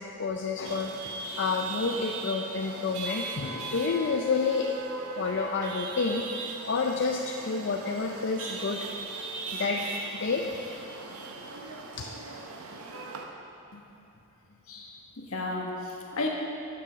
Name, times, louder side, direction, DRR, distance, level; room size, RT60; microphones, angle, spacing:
voice 1, 0.0-4.7 5.2-8.8 9.5-10.4 12.0-12.1, left 4 dB, 55° left, 1 dB, 0.4 m, -29 dB
Chatter / Vehicle horn car horn honking / Traffic noise roadway noise, 0.6-13.2, right 4 dB, 75° right, 0.8 m, -39 dB
voice 2, 14.7-16.3, left 2 dB, 70° left, -1 dB, 1.2 m, -34 dB
7.6 x 6.7 x 6.2 m, 2.8 s
head